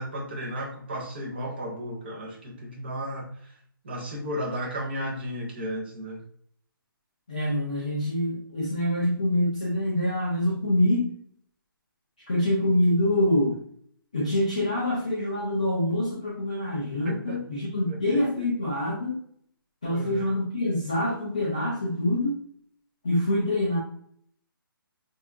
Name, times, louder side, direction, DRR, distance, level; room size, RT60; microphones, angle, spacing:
voice 1, 0.0-3.6 3.8-6.2 17.0-17.4 17.9-18.5 19.8-20.2, equal, 25° right, -1 dB, 0.7 m, -34 dB
voice 2, 7.3-11.1 12.3-13.6 14.1-19.2 19.8-22.4 23.0-23.8, left 1 dB, 20° left, -5 dB, 0.3 m, -25 dB
3.8 x 2.3 x 2.4 m, 0.63 s
hypercardioid pair, 175°, 12 cm